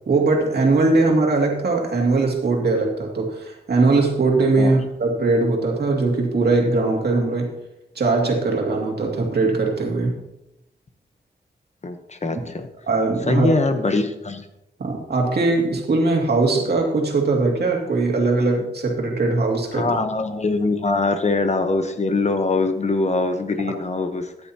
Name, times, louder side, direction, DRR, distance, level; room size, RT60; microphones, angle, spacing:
voice 1, 0.0-7.5 7.9-10.2 12.8-13.5 14.8-19.9, right 3 dB, 65° right, 0 dB, 2.4 m, -20 dB
voice 2, 11.8-12.7 13.3-14.4 19.7-24.3, left 3 dB, 40° left, 7 dB, 1.0 m, -22 dB
14.0 x 10.5 x 2.9 m, 0.86 s
wide cardioid pair, 130°, 18 cm